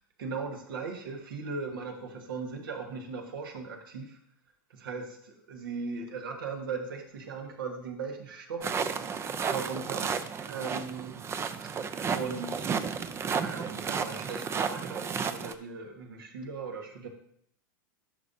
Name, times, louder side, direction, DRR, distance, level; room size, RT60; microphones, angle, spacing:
voice 1, 0.2-4.2 4.7-8.8 9.5-11.2 12.1-12.7 13.2-17.1, right 4 dB, 80° right, 2 dB, 1.6 m, -38 dB
sound 1, 8.6-15.5, right 6 dB, 25° right, 0.5 m, -32 dB
11.0 x 5.8 x 2.7 m, 0.68 s
hypercardioid pair, 105°, 11 cm